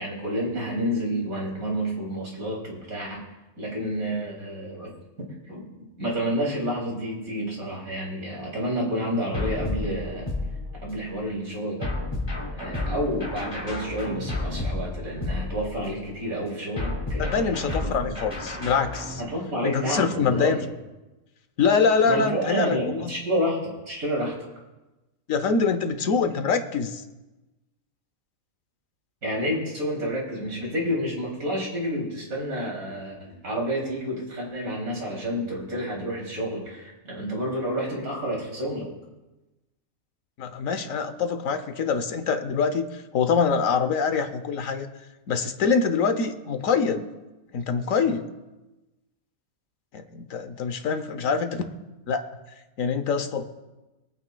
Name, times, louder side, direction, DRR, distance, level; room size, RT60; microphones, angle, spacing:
voice 1, 0.0-3.2 3.6-4.9 5.2-5.7 6.0-10.3 10.8-11.9 12.5-18.1 19.2-20.6 22.0-24.3 29.2-38.9, equal, 80° right, -3 dB, 3.5 m, -29 dB
sound 1, 9.3-11.1 11.8-16.0 16.8-19.2, left 2 dB, 15° left, 2.5 m, -31 dB
voice 2, 17.2-19.2 19.6-20.6 21.6-23.1 25.3-27.0 40.4-44.9 45.3-47.1 47.5-48.3 49.9-51.6 52.1-52.2 52.8-53.4, left 5 dB, 70° left, 9 dB, 1.2 m, -24 dB
25.5 x 9.1 x 2.3 m, 1.1 s
omnidirectional pair, 1.5 m